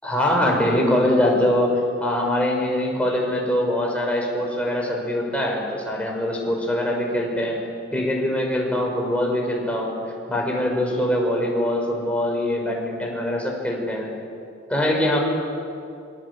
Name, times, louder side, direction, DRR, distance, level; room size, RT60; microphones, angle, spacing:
voice 1, 0.0-7.6 7.9-10.0 10.3-14.1 14.7-15.2, left 1 dB, 5° left, -1 dB, 6.1 m, -23 dB
26.0 x 25.5 x 8.8 m, 2.5 s
head